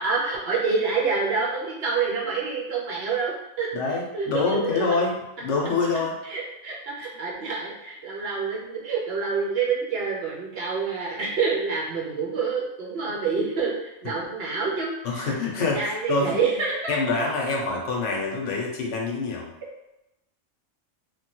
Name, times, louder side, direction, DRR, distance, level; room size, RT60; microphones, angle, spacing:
voice 1, 0.0-3.7 4.1-5.0 6.2-15.3 15.6-16.9, right 5 dB, 60° right, -3 dB, 0.8 m, -27 dB
voice 2, 3.7-6.2 13.0-13.1 15.0-16.4 16.9-19.5, left 3 dB, 70° left, -1 dB, 1.0 m, -26 dB
3.1 x 2.2 x 2.9 m, 0.91 s
omnidirectional pair, 1.3 m